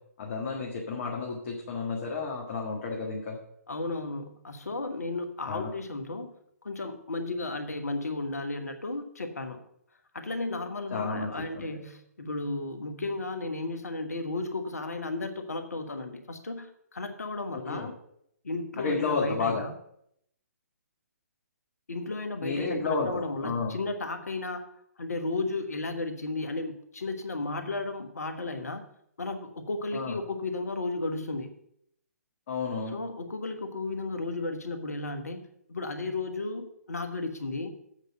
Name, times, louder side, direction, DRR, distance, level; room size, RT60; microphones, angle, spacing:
voice 1, 0.2-3.4 5.5-5.7 10.9-11.8 17.7-17.9 18.8-19.7 22.4-23.7 29.9-30.2 32.5-32.9, left 4 dB, 45° left, -1 dB, 1.7 m, -31 dB
voice 2, 3.7-6.3 6.6-9.6 10.1-17.9 18.4-19.7 21.9-24.7 25.0-28.8 29.2-31.5 32.9-35.4 35.7-37.7, left 2 dB, 70° left, 7 dB, 1.3 m, -34 dB
8.2 x 5.3 x 7.6 m, 0.72 s
figure-of-eight pair, 130°, 9 cm